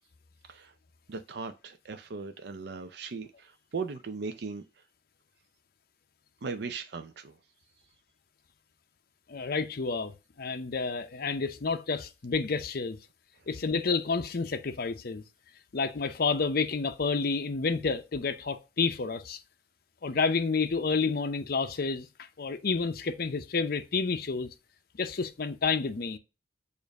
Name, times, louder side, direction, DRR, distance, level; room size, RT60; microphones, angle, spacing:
voice 1, 0.4-0.7 1.1-4.6 6.4-7.4 13.4-13.5, right 4 dB, 65° right, 0.5 m, -38 dB
voice 2, 9.3-13.0 13.5-15.2 15.7-19.4 20.0-24.5 25.0-26.2, left 4 dB, 60° left, 0.6 m, -30 dB
7.0 x 2.6 x 5.2 m
head